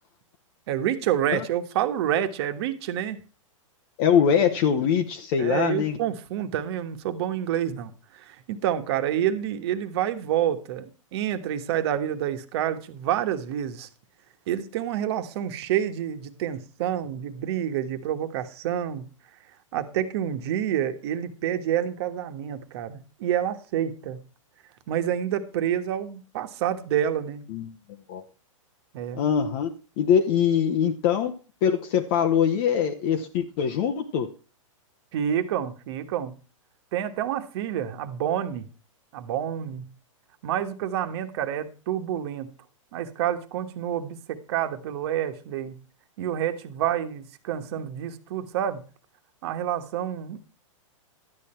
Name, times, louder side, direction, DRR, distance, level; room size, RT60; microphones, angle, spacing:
voice 1, 0.7-3.2 5.4-7.9 8.3-13.9 14.5-19.1 19.7-24.2 24.9-27.4 28.9-29.3 35.1-36.3 36.9-38.7 39.1-39.9 40.4-42.5 42.9-45.8 46.2-48.8 49.4-50.4, right 10 dB, 50° right, 1.5 m, -28 dB
voice 2, 4.0-6.0 27.5-27.7 28.1-28.2 29.1-29.7 30.0-34.3, left 8 dB, 45° left, 1.0 m, -23 dB
12.0 x 8.8 x 4.4 m
hypercardioid pair, 140°, 17 cm